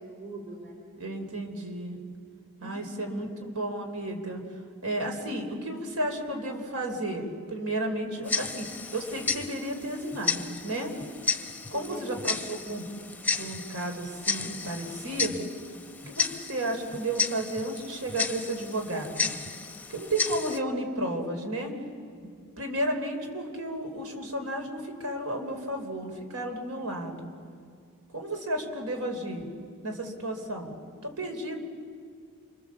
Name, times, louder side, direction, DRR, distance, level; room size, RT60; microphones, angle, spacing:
voice 1, 0.0-0.8 2.6-3.4 11.7-12.4, right 1 dB, 45° right, 0 dB, 4.2 m, -42 dB
voice 2, 1.0-2.0 2.6-4.4 4.8-10.9 11.7-12.9 13.4-15.5 16.1-19.3 19.9-21.7 22.6-27.3 28.1-29.5 29.8-30.8 31.0-31.6, right 1 dB, 80° right, 4 dB, 3.6 m, -33 dB
Tick-tock, 8.3-20.6, left 5 dB, 10° left, 0.8 m, -33 dB
30.0 x 25.0 x 7.3 m, 2.2 s
head